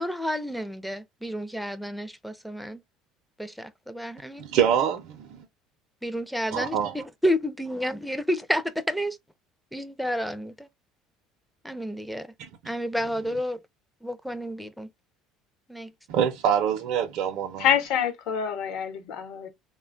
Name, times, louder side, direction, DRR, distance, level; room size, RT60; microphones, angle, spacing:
voice 1, 0.0-2.8 3.4-4.4 6.0-9.2 9.7-10.7 11.6-12.3 12.7-13.6 14.0-14.9 15.7-15.9, equal, ahead, 0.4 m, -30 dB
voice 2, 4.4-5.5 6.5-7.0 12.4-12.5 16.1-17.7, right 8 dB, 65° right, 0.5 m, -25 dB
voice 3, 17.6-19.5, left 9 dB, 65° left, 0.8 m, -26 dB
3.2 x 2.1 x 2.5 m
cardioid pair, 120°, 0 cm